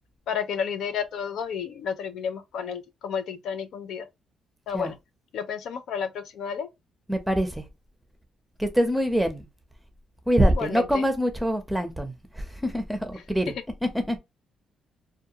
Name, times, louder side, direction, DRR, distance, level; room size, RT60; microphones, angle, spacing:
voice 1, 0.3-4.1 4.7-5.0 5.3-6.7 10.6-11.0, left 7 dB, 75° left, 0.4 m, -31 dB
voice 2, 7.1-7.6 8.6-9.5 10.3-13.5 13.8-14.2, equal, 5° right, 0.7 m, -25 dB
2.2 x 2.2 x 2.7 m
cardioid pair, 90°, 0 cm